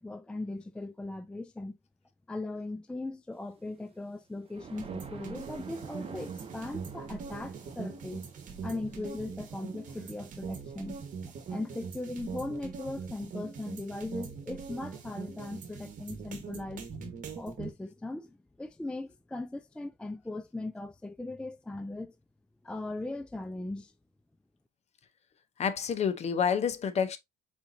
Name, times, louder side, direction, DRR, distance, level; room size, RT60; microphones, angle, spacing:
voice 1, 0.0-1.8 2.3-8.3 8.6-11.0 11.5-17.1 17.4-22.2 22.6-23.9, left 2 dB, 5° left, 0.3 m, -39 dB
sound 1, 3.8-11.8, right 6 dB, 35° right, 1.1 m, -50 dB
sound 2, 4.8-17.7, right 6 dB, 50° right, 1.3 m, -42 dB
voice 2, 25.6-27.2, left 7 dB, 40° left, 0.7 m, -28 dB
4.5 x 3.8 x 2.6 m
cardioid pair, 110°, 17 cm